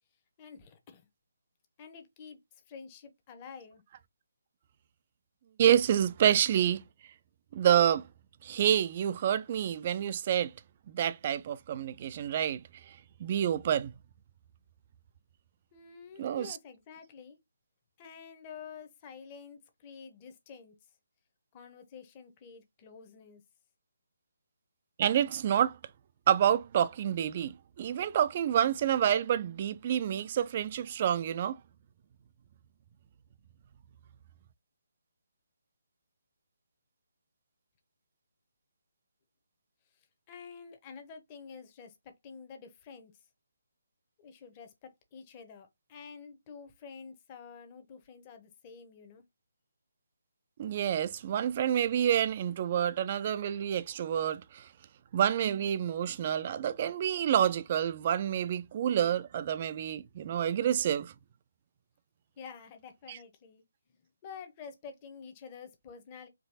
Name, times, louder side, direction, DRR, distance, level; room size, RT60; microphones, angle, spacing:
voice 1, 0.4-1.1 1.8-2.4 2.7-3.8 15.7-17.4 18.0-20.8 21.5-23.4 40.3-43.1 44.2-49.2 62.4-63.6 64.2-66.3, left 6 dB, 25° left, 1.0 m, -49 dB
voice 2, 5.6-6.8 7.5-8.0 8.4-10.5 10.9-12.6 13.2-13.9 16.2-16.6 25.0-25.8 26.3-31.6 50.6-54.7 55.1-61.1 63.1-63.2, right 10 dB, 35° right, 0.4 m, -28 dB
4.6 x 3.1 x 2.8 m
figure-of-eight pair, 145°, 0 cm